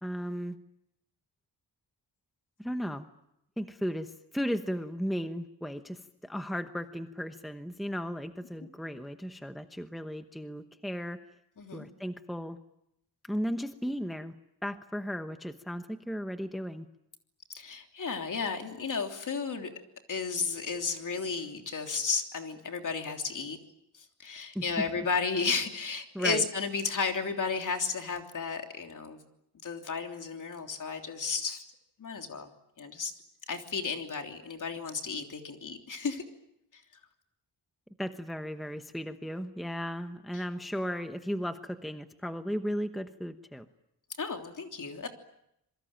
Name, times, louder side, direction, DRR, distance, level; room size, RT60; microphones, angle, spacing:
voice 1, 0.0-0.6 2.6-3.1 3.6-11.2 11.7-12.6 13.2-14.3 14.6-16.9 24.5-24.8 26.1-26.4 38.0-43.7, equal, ahead, 8 dB, 1.0 m, -35 dB
voice 2, 17.5-19.7 20.1-23.6 23.9-29.2 29.6-31.6 32.0-32.5 32.8-33.1 33.5-36.2 36.7-36.8 40.3-40.4 44.2-45.1, left 5 dB, 50° left, 4 dB, 3.3 m, -33 dB
27.0 x 23.0 x 9.0 m, 0.80 s
wide cardioid pair, 155°, 39 cm